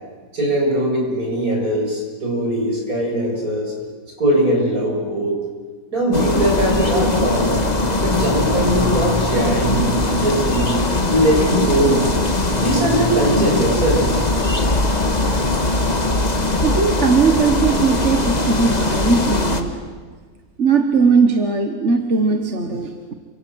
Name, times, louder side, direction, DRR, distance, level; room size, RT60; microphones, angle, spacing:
voice 1, 0.3-3.7 4.2-5.4 5.9-7.7 8.0-10.8 11.1-12.1 12.6-14.2, right 1 dB, 65° right, 0 dB, 7.2 m, -20 dB
sound 1, 6.1-19.6, left 2 dB, 25° left, 1.9 m, -20 dB
voice 2, 16.6-19.7 20.6-23.1, right 5 dB, 50° right, 5 dB, 1.7 m, -18 dB
28.5 x 25.5 x 8.0 m, 1.5 s
omnidirectional pair, 1.6 m